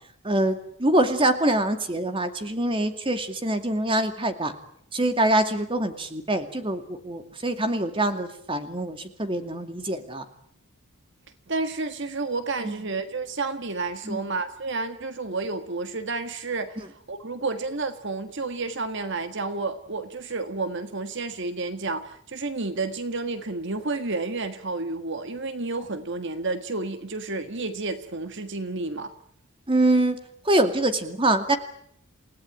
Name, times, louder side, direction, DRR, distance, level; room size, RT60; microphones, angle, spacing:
voice 1, 0.2-4.5 4.9-10.3 12.6-12.7 14.0-14.2 29.7-30.2 30.4-31.6, right 1 dB, 25° right, 8 dB, 2.3 m, -24 dB
voice 2, 11.5-29.1, right 3 dB, 55° right, 9 dB, 1.7 m, -31 dB
29.0 x 17.5 x 9.1 m, 0.68 s
head